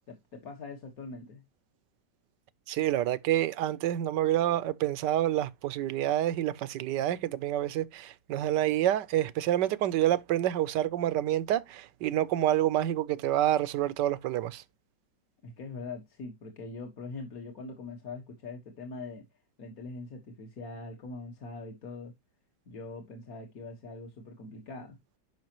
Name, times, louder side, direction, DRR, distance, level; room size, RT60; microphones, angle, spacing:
voice 1, 0.1-1.4 15.4-19.2 19.6-22.1 22.7-25.0, left 3 dB, 55° left, 1.9 m, -42 dB
voice 2, 2.7-14.6, right 12 dB, 80° right, 1.3 m, -28 dB
10.5 x 5.7 x 2.9 m
omnidirectional pair, 1.9 m